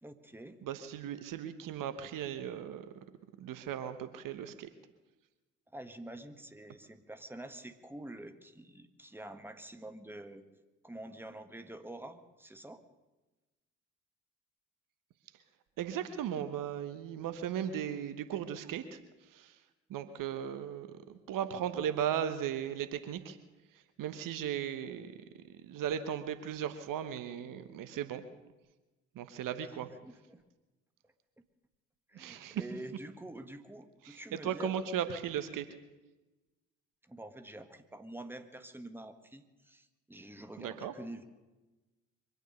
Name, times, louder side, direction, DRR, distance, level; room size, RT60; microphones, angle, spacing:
voice 1, 0.0-0.6 5.7-10.4 10.8-12.8 29.6-30.4 32.1-34.8 37.1-41.2, right 1 dB, 5° right, 8 dB, 1.6 m, -47 dB
voice 2, 0.6-2.9 3.4-4.7 15.8-19.0 19.3-19.6 19.9-23.4 24.0-25.1 25.6-28.2 29.1-29.9 32.1-32.6 34.0-35.7 40.6-40.9, right 9 dB, 55° right, 11 dB, 1.1 m, -37 dB
24.0 x 9.3 x 6.6 m, 1.1 s
figure-of-eight pair, 45°, 38 cm